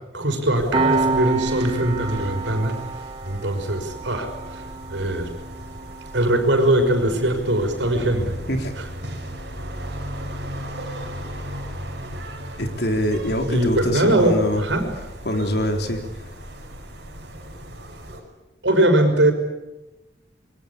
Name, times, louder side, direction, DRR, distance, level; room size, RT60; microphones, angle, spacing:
voice 1, 0.1-2.8 3.2-4.6 4.9-5.3 6.1-8.3 8.8-8.9 13.5-14.9 18.6-19.3, right 1 dB, 80° right, 5 dB, 5.8 m, -21 dB
sound 1, 0.5-18.2, equal, 65° right, 5.8 m, -36 dB
Piano, 0.7-11.8, right 3 dB, 25° right, 1.4 m, -31 dB
voice 2, 12.6-14.6 15.3-16.0, equal, 60° left, 4 dB, 3.8 m, -24 dB
26.5 x 23.0 x 8.6 m, 1.0 s
head